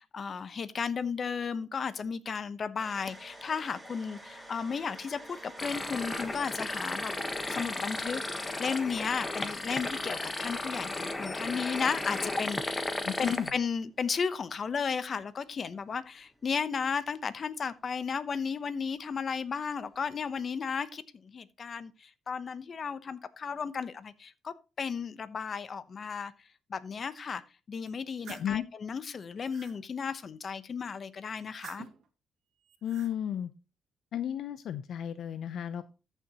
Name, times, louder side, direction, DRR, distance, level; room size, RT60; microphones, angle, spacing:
voice 1, 0.1-7.1 7.5-26.3 26.7-27.4 27.7-31.9, left 6 dB, 45° left, 1.0 m, -34 dB
sound 1, 2.8-10.4 10.9-11.0 12.5-13.1 14.1-18.2 18.5-18.8 19.1-20.3, right 1 dB, 5° right, 3.5 m, -50 dB
sound 2, 5.6-13.5, left 2 dB, 20° left, 1.4 m, -34 dB
voice 2, 13.0-13.5 28.3-28.6 32.8-33.5 34.1-35.9, left 10 dB, 70° left, 0.7 m, -34 dB
sound 3, 27.9-28.6 29.1-29.8 31.4-32.1 32.6-33.1, right 7 dB, 70° right, 1.8 m, -49 dB
14.0 x 6.7 x 3.1 m
cardioid pair, 90°, 0 cm